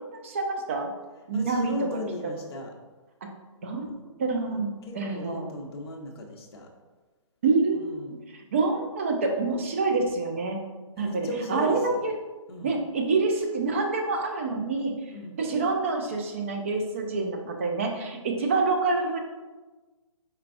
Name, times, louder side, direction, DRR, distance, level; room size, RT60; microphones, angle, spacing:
voice 1, 0.1-0.9 1.3-1.7 3.6-5.5 7.4-7.8 8.3-10.6 11.0-12.1 12.6-14.9 15.4-19.2, right 3 dB, 25° right, 2 dB, 0.4 m, -27 dB
voice 2, 1.3-2.7 3.8-4.0 4.5-6.7 7.7-8.2 11.0-12.0 12.5-12.8 15.1-15.4, left 1 dB, 50° left, 1 dB, 0.8 m, -37 dB
4.6 x 4.3 x 2.5 m, 1.2 s
hypercardioid pair, 160°, 17 cm